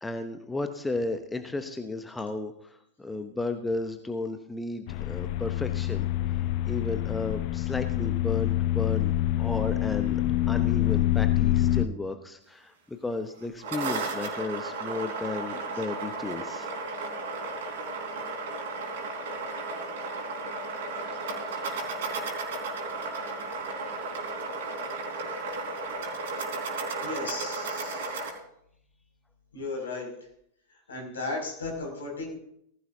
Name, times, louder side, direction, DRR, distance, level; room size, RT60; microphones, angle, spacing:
voice 1, 0.0-6.4 6.7-10.2 10.5-16.7 21.0-21.7, left 3 dB, 10° left, 7 dB, 0.9 m, -34 dB
sound 1, 4.9-11.9, left 13 dB, 45° left, 0.5 m, -26 dB
sound 2, 13.4-28.3, right 3 dB, 55° right, 3.7 m, -34 dB
voice 2, 27.0-28.3 29.5-30.1 30.9-32.4, left 3 dB, 70° left, 1 dB, 6.3 m, -35 dB
18.5 x 15.5 x 2.8 m, 0.72 s
figure-of-eight pair, 90°, 0 cm